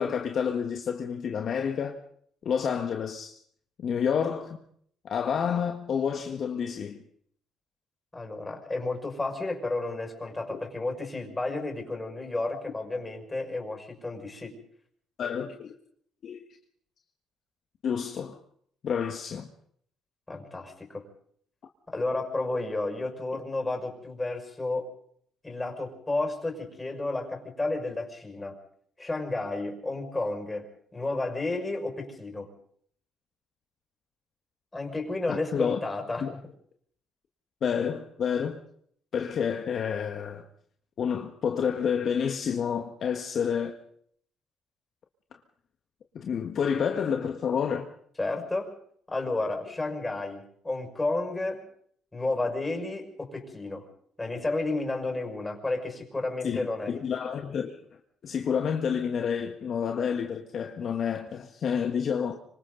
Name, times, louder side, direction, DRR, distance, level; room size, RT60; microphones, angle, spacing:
voice 1, 0.0-2.0 2.4-3.4 3.8-4.6 5.0-7.0 15.2-15.7 16.2-16.4 17.8-18.4 18.8-19.5 35.3-35.8 36.2-36.3 37.6-38.6 39.1-40.5 41.0-43.7 46.1-47.9 56.4-57.8 58.2-62.4, left 7 dB, 55° left, 1.6 m, -29 dB
voice 2, 8.1-14.6 20.3-21.0 21.9-24.9 25.4-28.6 29.0-32.5 34.7-36.3 48.2-48.7 49.1-51.6 52.1-53.8 54.2-56.9, left 2 dB, 15° left, 6.1 m, -32 dB
26.0 x 25.0 x 4.0 m
supercardioid pair, 75°, 0 cm